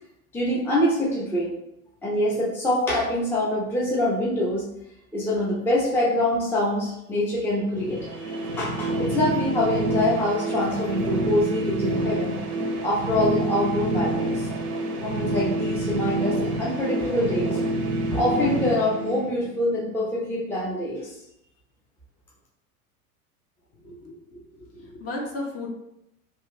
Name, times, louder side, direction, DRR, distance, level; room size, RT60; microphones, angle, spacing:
voice 1, 0.3-1.6 2.0-4.6 5.1-12.4 12.8-14.5 15.0-17.6 18.1-21.1, left 1 dB, 5° left, -6 dB, 0.6 m, -25 dB
sound 1, 7.7-19.6, right 1 dB, 75° right, 0.8 m, -27 dB
voice 2, 23.8-24.4 24.7-25.7, left 2 dB, 30° left, -1 dB, 0.9 m, -35 dB
3.0 x 2.3 x 3.1 m, 0.82 s
figure-of-eight pair, 80°, 44 cm